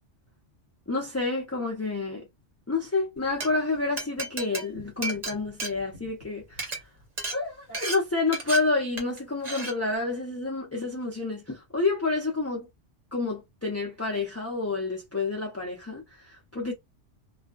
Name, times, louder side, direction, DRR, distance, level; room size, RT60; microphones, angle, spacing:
voice 1, 0.9-2.3 2.7-6.8 7.3-12.7 13.1-16.7, left 3 dB, 20° left, 0.5 m, -29 dB
Glass, 3.2-3.5 4.0-6.2 6.5-6.8 7.2-7.4 7.7-8.0 8.3-8.6 9.0-9.2 9.4-9.7, right 2 dB, 40° right, 0.9 m, -33 dB
2.4 x 2.2 x 2.3 m
omnidirectional pair, 1.2 m